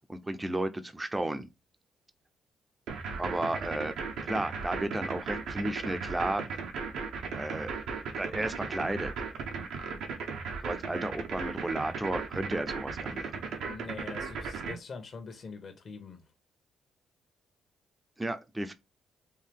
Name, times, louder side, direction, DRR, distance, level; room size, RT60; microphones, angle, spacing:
voice 1, 0.1-1.5 3.2-3.9 4.2-6.4 7.3-7.7 8.2-9.1 10.6-13.5 18.2-18.7, right 1 dB, 15° right, 0.7 m, -33 dB
sound 1, 2.9-14.7, right 5 dB, 85° right, 1.2 m, -36 dB
voice 2, 3.1-3.5 13.6-16.2, left 4 dB, 50° left, 1.2 m, -44 dB
4.6 x 2.7 x 3.6 m
cardioid pair, 90°, 0 cm